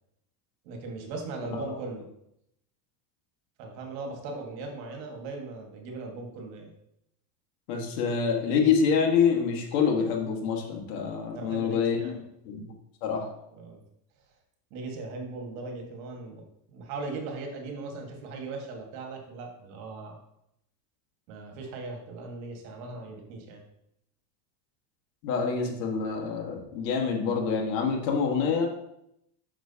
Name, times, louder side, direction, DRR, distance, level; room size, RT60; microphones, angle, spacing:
voice 1, 0.6-2.1 3.6-6.7 11.3-12.2 13.6-13.8 14.7-16.4 16.7-20.2 21.3-23.6, right 3 dB, 75° right, 2 dB, 1.7 m, -38 dB
voice 2, 7.7-12.1 12.4-12.7 13.0-13.3 25.2-28.7, left 6 dB, 80° left, 1 dB, 1.7 m, -26 dB
6.1 x 6.0 x 2.8 m, 0.79 s
supercardioid pair, 120°, 49 cm